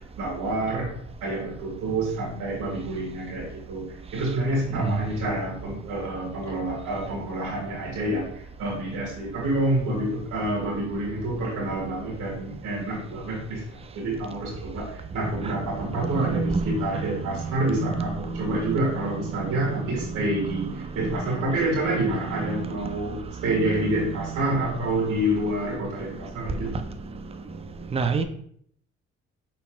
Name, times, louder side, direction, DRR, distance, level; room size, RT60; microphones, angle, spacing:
voice 1, 0.2-0.9 1.2-13.7 13.9-26.8, right 1 dB, 85° right, -4 dB, 1.8 m, -28 dB
voice 2, 4.7-5.0 15.4-15.6 15.9-22.0 22.4-23.0 23.5-23.6 23.9-24.6 27.9-28.2, right 5 dB, 20° right, 8 dB, 0.5 m, -31 dB
5.5 x 4.1 x 2.3 m, 0.65 s
cardioid pair, 90°, 30 cm